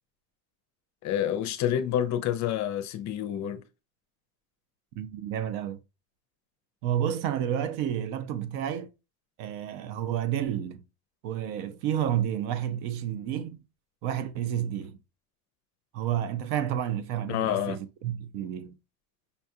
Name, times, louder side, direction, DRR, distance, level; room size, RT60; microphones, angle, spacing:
voice 1, 1.0-3.6 17.3-17.8, left 10 dB, 45° left, 0.5 m, -28 dB
voice 2, 5.0-5.8 6.8-8.9 9.4-10.8 11.2-13.6 14.0-15.0 15.9-18.8, right 10 dB, 65° right, 0.7 m, -30 dB
5.3 x 2.3 x 2.7 m
supercardioid pair, 120°, 41 cm